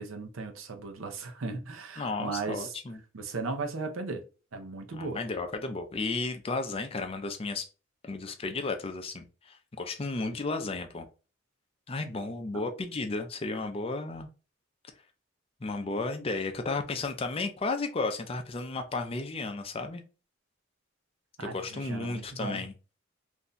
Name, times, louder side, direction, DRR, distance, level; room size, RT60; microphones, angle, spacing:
voice 1, 0.0-2.7 3.1-4.2 4.5-5.2 21.4-22.6, right 3 dB, 85° right, 0.6 m, -36 dB
voice 2, 2.0-3.0 4.9-7.7 8.0-11.1 11.9-14.3 15.6-20.0 21.4-22.7, left 3 dB, 30° left, 0.4 m, -33 dB
2.6 x 2.2 x 3.8 m
head